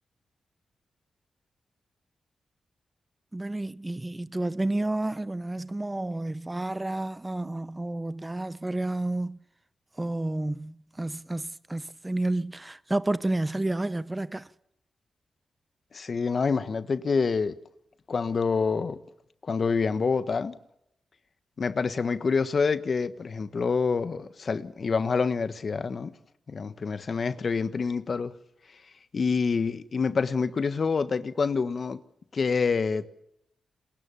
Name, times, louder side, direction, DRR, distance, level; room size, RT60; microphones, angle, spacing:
voice 1, 3.3-9.4 10.0-14.5, right 2 dB, 20° right, 1.0 m, -30 dB
voice 2, 15.9-17.5 18.1-19.0 19.4-20.5 21.6-26.1 26.5-28.3 29.1-32.0 32.3-33.1, left 5 dB, 55° left, 1.4 m, -27 dB
29.0 x 21.0 x 7.2 m
supercardioid pair, 45°, 0 cm